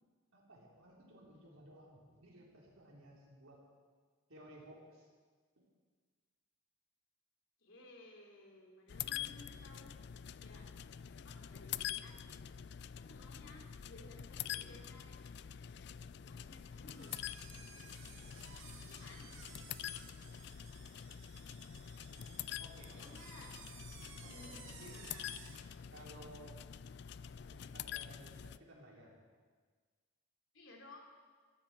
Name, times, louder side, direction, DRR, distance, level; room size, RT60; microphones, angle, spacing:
voice 1, 0.3-3.6 4.3-5.1 5.6-5.7 18.8-18.9 22.6-23.2 24.2-25.0 25.9-26.6 27.5-29.2, right 1 dB, 85° right, -3 dB, 4.3 m, -57 dB
voice 2, 7.6-10.0 10.4-10.7 11.2-12.5 13.0-15.2 16.3-17.2 18.9-19.3 22.9-23.5 24.2-25.3 30.5-31.1, left 2 dB, 70° left, 1 dB, 2.9 m, -57 dB
sound 1, 8.9-28.6, left 9 dB, 55° left, 0.3 m, -46 dB
sound 2, 16.9-25.7, right 5 dB, 70° right, 2.2 m, -57 dB
19.5 x 14.5 x 4.5 m, 1.5 s
head